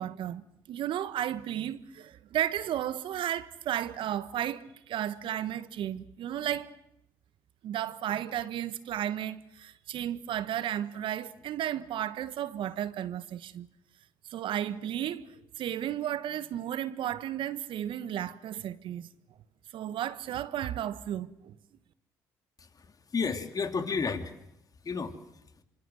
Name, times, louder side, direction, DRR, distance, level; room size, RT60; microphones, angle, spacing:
voice 1, 0.0-6.7 7.6-13.7 14.3-19.1 19.7-21.6, right 11 dB, 65° right, 1.3 m, -34 dB
voice 2, 22.6-24.3 24.8-25.2, left 5 dB, 40° left, 3.0 m, -32 dB
26.0 x 25.5 x 7.8 m
hypercardioid pair, 55°, 9 cm